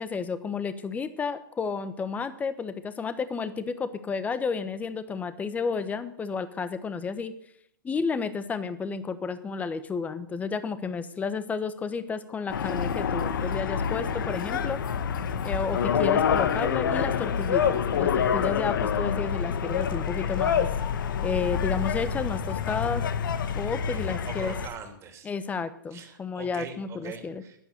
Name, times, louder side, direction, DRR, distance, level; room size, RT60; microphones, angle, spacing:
voice 1, 0.0-7.3 7.8-14.8 15.4-20.7 21.2-23.1 23.5-24.6 25.2-27.4, left 5 dB, 15° left, 13 dB, 1.1 m, -32 dB
sound 1, 12.5-24.7, left 7 dB, 70° left, 1.4 m, -27 dB
voice 2, 23.9-25.3 25.9-27.6, right 6 dB, 25° right, 5 dB, 2.7 m, -42 dB
11.0 x 11.0 x 8.0 m, 0.69 s
hypercardioid pair, 130°, 11 cm